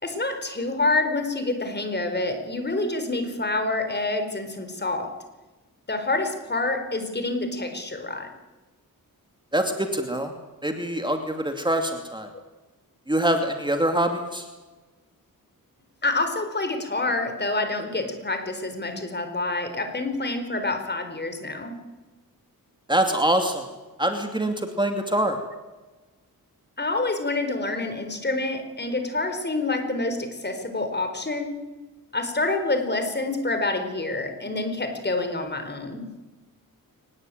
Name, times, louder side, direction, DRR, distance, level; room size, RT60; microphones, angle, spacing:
voice 1, 0.0-5.2 5.9-8.3 16.0-21.8 26.8-31.6 32.1-36.1, left 2 dB, 30° left, 7 dB, 4.4 m, -27 dB
voice 2, 9.5-10.3 10.6-12.3 13.1-14.5 22.9-23.7 24.0-25.4, right 1 dB, 15° right, 5 dB, 2.6 m, -24 dB
23.5 x 20.0 x 9.2 m, 1.2 s
wide cardioid pair, 120°, 36 cm